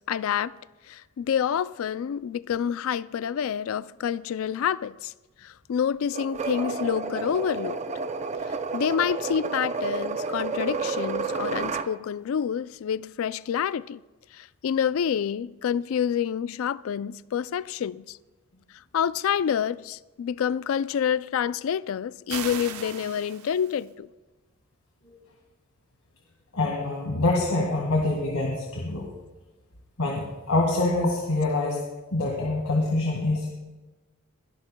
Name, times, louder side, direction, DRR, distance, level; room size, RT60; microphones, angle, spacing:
voice 1, 0.1-0.5 0.9-5.1 5.4-7.8 8.7-14.0 14.4-18.2 18.9-24.1, left 8 dB, 65° left, 0.3 m, -28 dB
sound 1, 6.1-11.9, right 4 dB, 30° right, 0.4 m, -30 dB
sound 2, 22.3-23.9, right 7 dB, 80° right, 0.9 m, -38 dB
voice 2, 26.5-29.1 30.0-31.8 32.1-33.5, left 2 dB, 85° left, 1.9 m, -25 dB
22.5 x 12.0 x 2.2 m
head